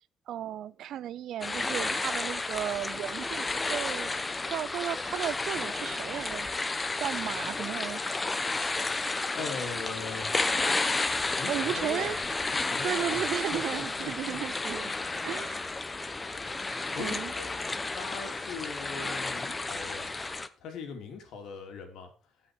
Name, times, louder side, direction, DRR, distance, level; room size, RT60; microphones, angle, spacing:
voice 1, 0.3-4.1 4.5-6.5 7.0-8.0 11.5-12.2 12.8-14.9 15.2-15.7 17.0-17.3, right 11 dB, 75° right, 0.4 m, -34 dB
sound 1, 1.4-20.5, left 3 dB, 25° left, 0.9 m, -32 dB
voice 2, 9.3-10.4 11.4-14.4 15.0-15.6 16.9-20.1 20.6-22.1, left 5 dB, 80° left, 2.9 m, -41 dB
16.0 x 5.7 x 4.7 m
cardioid pair, 90°, 0 cm